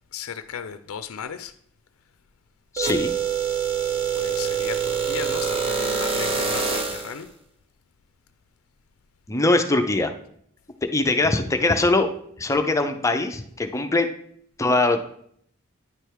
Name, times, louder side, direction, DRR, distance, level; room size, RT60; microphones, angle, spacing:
voice 1, 0.1-1.5 4.1-7.3, left 7 dB, 75° left, 0.4 m, -35 dB
voice 2, 2.7-3.1 9.3-10.1 10.9-12.1 12.4-14.1 14.6-15.0, left 2 dB, 15° left, 0.5 m, -21 dB
sound 1, 2.8-7.2, right 6 dB, 25° right, 0.7 m, -25 dB
9.8 x 3.4 x 4.6 m
head